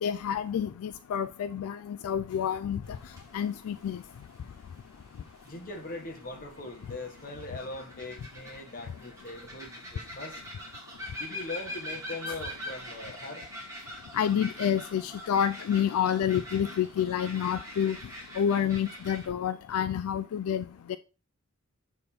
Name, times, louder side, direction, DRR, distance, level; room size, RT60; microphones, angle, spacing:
voice 1, 0.0-2.8 3.3-4.0 12.3-12.4 14.1-18.0 18.4-21.0, left 9 dB, 75° left, 0.3 m, -28 dB
sound 1, 2.8-19.3, equal, 15° right, 1.7 m, -44 dB
voice 2, 5.4-10.4 11.1-13.4, left 2 dB, 40° left, 1.2 m, -41 dB
6.7 x 3.7 x 4.1 m
head